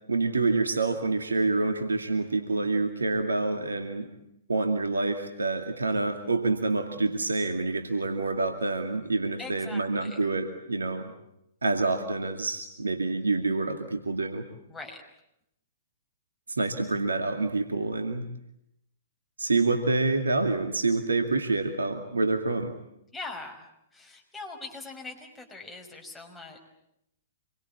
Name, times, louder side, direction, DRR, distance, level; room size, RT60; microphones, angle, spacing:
voice 1, 0.1-4.1 4.5-11.1 11.6-14.5 16.6-18.3 19.4-22.7, right 3 dB, 80° right, 6 dB, 2.4 m, -27 dB
voice 2, 9.4-10.2 14.7-15.0 23.1-23.7 23.9-26.6, left 3 dB, 5° left, 0 dB, 5.7 m, -41 dB
27.0 x 22.5 x 8.7 m, 0.80 s
figure-of-eight pair, 110°, 0 cm